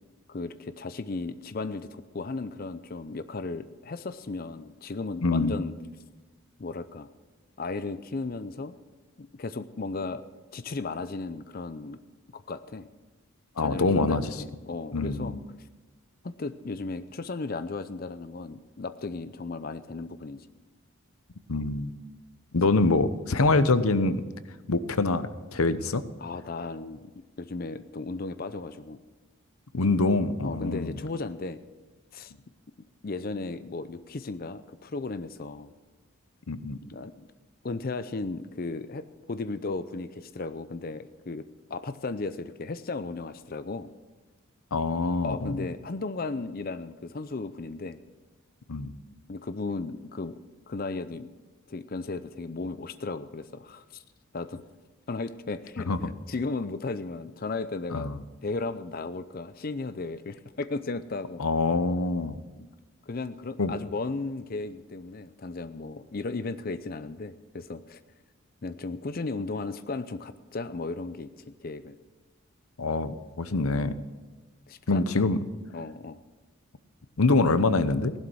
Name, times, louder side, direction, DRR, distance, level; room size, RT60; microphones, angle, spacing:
voice 1, 0.3-5.7 6.6-7.1 7.6-8.8 9.2-10.2 10.5-12.0 12.3-12.9 13.6-15.4 16.2-20.5 26.2-27.1 27.4-29.0 30.4-31.6 32.1-32.3 33.0-35.7 36.8-37.1 37.6-41.4 41.7-43.9 45.2-48.0 49.3-50.4 50.7-51.3 51.7-54.0 54.3-54.6 55.1-61.4 62.6-62.7 63.1-68.0 68.6-72.0 74.7-75.1 75.7-76.2, left 3 dB, 45° left, 12 dB, 0.5 m, -35 dB
voice 2, 5.2-5.6 13.6-14.2 14.9-15.4 21.5-22.0 22.5-24.2 24.7-26.0 29.7-30.9 36.5-36.8 44.7-45.6 48.7-49.0 55.9-56.0 57.9-58.2 61.4-62.4 63.6-63.7 72.8-73.9 74.9-75.4 77.2-78.1, left 3 dB, 85° left, 13 dB, 0.8 m, -25 dB
16.0 x 11.5 x 6.3 m, 1.2 s
head